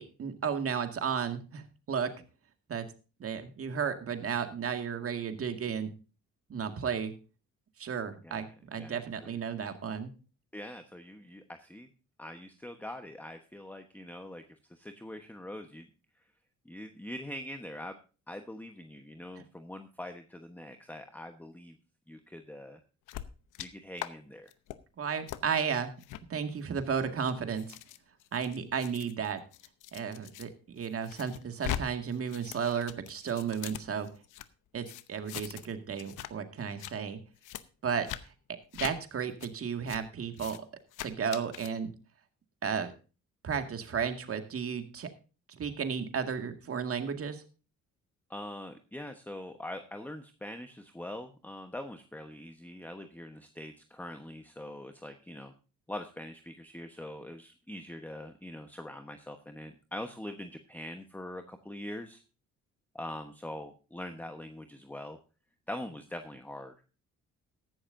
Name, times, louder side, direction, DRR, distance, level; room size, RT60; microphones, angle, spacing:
voice 1, 0.0-1.6 1.9-2.1 2.7-2.9 3.2-5.9 6.5-7.1 7.8-10.1 25.0-25.9 26.3-27.8 28.3-29.4 29.9-34.1 34.7-37.2 37.8-38.1 38.7-40.6 41.0-41.9 42.6-42.9 43.4-45.1 45.6-47.4, right 7 dB, 50° right, 7 dB, 2.0 m, -33 dB
voice 2, 8.8-9.4 10.5-11.9 12.2-14.4 14.7-15.9 16.6-18.0 18.3-21.8 22.1-22.8 23.6-24.5 48.3-55.5 55.9-62.2 62.9-65.2 65.7-66.9, left 1 dB, 5° left, 6 dB, 1.1 m, -43 dB
small paper notes, 23.1-23.7 24.0-24.1 24.5-24.8 25.3-25.4 26.0-26.2 26.9-30.5 30.8-31.8 32.1-34.5 34.8-35.7 36.0-36.3 36.6-36.9 37.4-37.6 38.0-38.2 38.7-38.9 39.4-39.5 39.9-40.0 40.3-40.6 40.9-41.7, left 12 dB, 85° left, 0.8 m, -41 dB
15.0 x 11.5 x 2.7 m, 0.34 s
cardioid pair, 90°, 30 cm